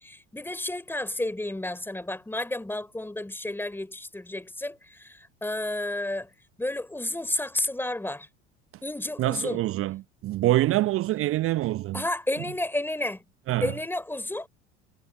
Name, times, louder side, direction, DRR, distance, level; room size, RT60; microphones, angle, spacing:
voice 1, 0.0-6.3 6.6-8.3 8.8-9.6 11.9-13.2 13.6-14.5, left 1 dB, 5° left, 3.6 m, -31 dB
voice 2, 9.2-12.0 13.5-13.7, right 16 dB, 40° right, 0.9 m, -25 dB
figure-of-eight pair, 75°, 36 cm